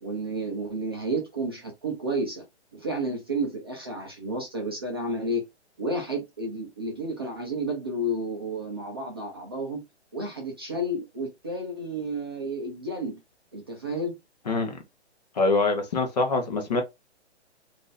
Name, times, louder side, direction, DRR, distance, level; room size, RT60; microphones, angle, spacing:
voice 1, 0.0-2.4 2.7-5.4 5.8-9.8 10.1-13.2 13.5-14.1, right 1 dB, 20° right, 0.5 m, -31 dB
voice 2, 14.5-14.8 15.4-16.8, left 3 dB, 35° left, 0.8 m, -24 dB
3.6 x 2.6 x 2.5 m
hypercardioid pair, 170°, 34 cm